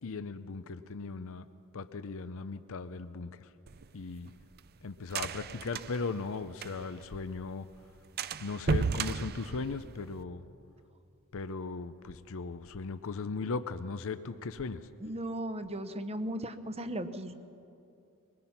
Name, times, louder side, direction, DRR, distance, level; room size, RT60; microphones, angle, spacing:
voice 1, 0.0-1.5 1.7-3.5 3.9-4.3 4.8-7.7 8.4-10.4 11.3-14.9, left 4 dB, 65° left, 12 dB, 0.6 m, -38 dB
sound 1, 3.7-7.1 7.4-7.5 7.7-7.9 8.2-10.2, right 5 dB, 45° right, 0.5 m, -34 dB
voice 2, 15.0-17.3, right 1 dB, 30° right, 10 dB, 0.9 m, -36 dB
23.0 x 20.0 x 5.8 m, 2.7 s
head